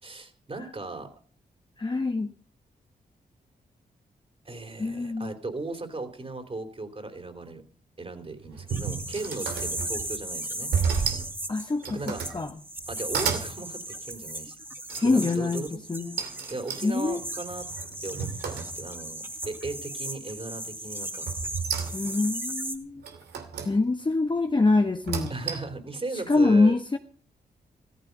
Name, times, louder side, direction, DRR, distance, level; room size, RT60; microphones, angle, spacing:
voice 1, 0.0-1.1 4.4-7.6 8.0-10.7 11.9-12.2 12.9-14.6 15.0-15.8 16.5-17.7 18.0-21.3 25.3-26.8, right 3 dB, 35° right, 6 dB, 3.7 m, -37 dB
voice 2, 1.8-2.3 4.8-5.3 11.5-12.0 12.3-12.5 15.0-16.2 16.8-17.2 21.9-23.0 23.6-25.3 26.3-27.0, left 3 dB, 30° left, 5 dB, 1.2 m, -24 dB
sound 1, 8.3-10.2 10.7-11.3 11.7-12.4 12.8-13.5 14.9-15.4 16.2-19.1 19.4-19.9 21.3-22.3 23.0-23.7 24.9-25.8, right 6 dB, 90° right, 2.6 m, -32 dB
sound 2, 8.7-22.8, right 1 dB, 15° right, 2.9 m, -37 dB
14.5 x 14.5 x 5.4 m, 0.42 s
cardioid pair, 60°, 17 cm